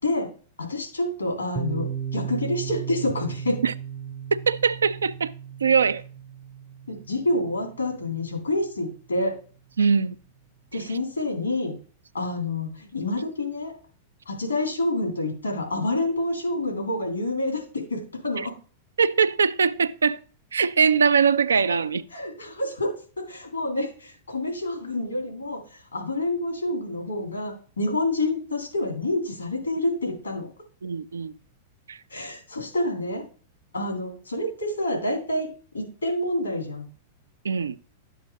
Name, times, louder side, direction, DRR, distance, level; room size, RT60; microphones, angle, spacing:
voice 1, 0.6-3.6 6.9-9.4 10.7-11.8 12.1-13.7 14.3-18.5 22.1-22.9 23.2-30.5 32.1-33.2 33.7-35.5 35.7-36.9, left 2 dB, 80° left, 2.9 m, -28 dB
Piano, 1.6-9.0, right 8 dB, 10° right, 0.6 m, -36 dB
voice 2, 4.5-5.3 5.6-6.0 9.8-10.2 18.3-18.5 19.0-20.2 20.5-22.0 30.8-31.3 31.9-32.0 37.4-37.8, right 6 dB, 70° right, 0.4 m, -21 dB
7.9 x 2.8 x 5.1 m
figure-of-eight pair, 95°, 0 cm